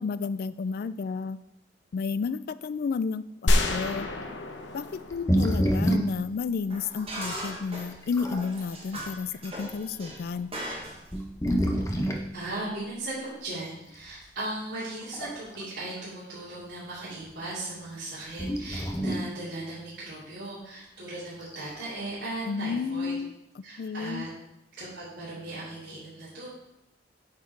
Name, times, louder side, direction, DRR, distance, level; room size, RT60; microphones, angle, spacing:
voice 1, 0.0-1.4 1.9-4.1 4.7-10.5 22.5-23.3 23.8-24.3, left 5 dB, 55° left, 15 dB, 0.3 m, -31 dB
sound 1, 3.5-6.4, left 1 dB, 90° left, 0.9 m, -28 dB
sound 2, 4.1-4.2 5.1-6.2 7.1-7.2 7.9-8.5 9.3-9.5 10.4-10.5 11.0-12.3 14.0-14.1 14.9-15.6 16.0-16.1 18.4-19.3 21.4-21.9, equal, 15° left, 0.8 m, -28 dB
sound 3, 6.1-6.2 6.7-11.2, equal, 30° right, 1.4 m, -39 dB
voice 2, 12.3-23.1 23.6-24.3 24.8-26.5, right 2 dB, 75° right, -11 dB, 2.6 m, -37 dB
8.5 x 4.6 x 4.6 m, 0.87 s
head